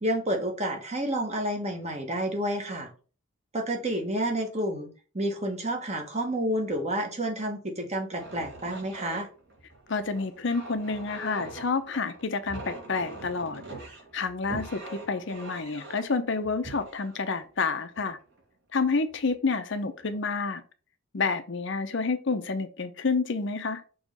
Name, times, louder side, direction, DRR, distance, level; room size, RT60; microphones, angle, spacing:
voice 1, 0.0-2.9 3.5-9.3, right 1 dB, 30° right, 1.2 m, -30 dB
sound 1, 8.1-18.4 19.1-19.3 19.7-20.2, right 2 dB, 55° right, 2.4 m, -43 dB
voice 2, 9.9-13.6 14.1-18.2 18.7-20.6 21.1-23.8, left 4 dB, 60° left, 0.7 m, -29 dB
6.3 x 3.1 x 5.1 m
head